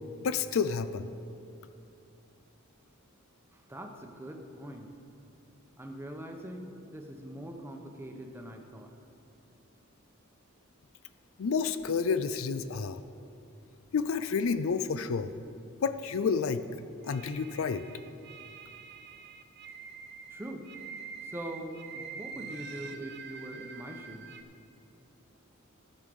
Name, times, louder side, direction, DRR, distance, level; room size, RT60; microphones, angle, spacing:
voice 1, 0.2-1.1 11.4-13.0 13.9-15.3 15.8-16.6 17.1-17.8, left 5 dB, 70° left, 12 dB, 0.4 m, -30 dB
voice 2, 3.5-4.9 5.8-8.9 20.3-20.7 21.2-24.4, right 1 dB, 10° right, 3 dB, 0.9 m, -42 dB
sound 1, 17.0-24.4, right 6 dB, 55° right, 0.7 m, -46 dB
14.5 x 6.5 x 5.3 m, 2.6 s
head